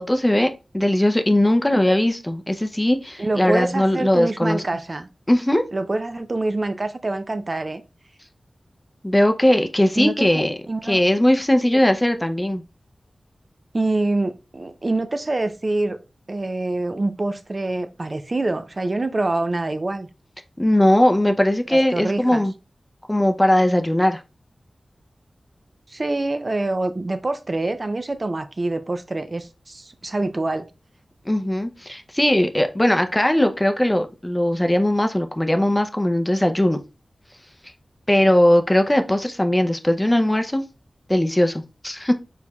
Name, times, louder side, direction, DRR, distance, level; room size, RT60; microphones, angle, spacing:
voice 1, 0.0-4.6 5.3-5.6 9.0-12.6 20.6-22.5 23.1-24.2 31.3-36.8 38.1-40.6 41.1-42.1, left 1 dB, 15° left, 0.5 m, -19 dB
voice 2, 3.2-5.1 5.7-7.8 10.0-10.3 10.7-11.0 11.7-11.8 13.7-16.0 16.3-20.1 21.7-22.4 25.9-30.7, right 2 dB, 45° right, 0.4 m, -25 dB
4.6 x 4.1 x 2.3 m
wide cardioid pair, 60°, 0 cm